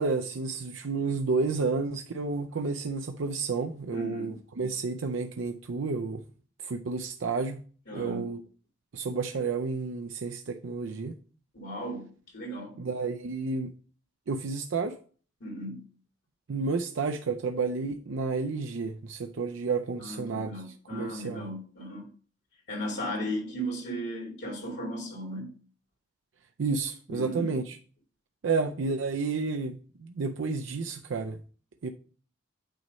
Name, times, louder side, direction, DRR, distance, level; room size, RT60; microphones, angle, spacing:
voice 1, 0.0-6.2 6.6-7.6 7.9-8.4 8.9-11.1 12.8-13.7 14.3-14.9 16.5-20.5 20.9-21.4 26.6-27.8 28.4-31.4 31.8-31.9, right 4 dB, 75° right, 0.5 m, -31 dB
voice 2, 3.9-4.3 7.9-8.3 11.5-12.7 15.4-15.8 20.0-22.1 22.7-25.5 27.1-27.5, equal, 60° left, 2.5 m, -36 dB
8.9 x 3.1 x 5.2 m
head